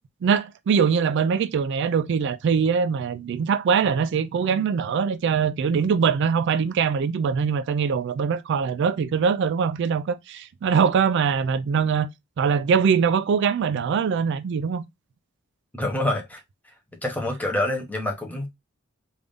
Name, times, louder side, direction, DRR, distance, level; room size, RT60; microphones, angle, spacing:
voice 1, 0.2-12.1 12.4-14.8, right 6 dB, 60° right, 0.3 m, -22 dB
voice 2, 15.7-16.4 17.0-18.5, left 1 dB, 10° left, 0.8 m, -26 dB
3.5 x 2.6 x 3.4 m
head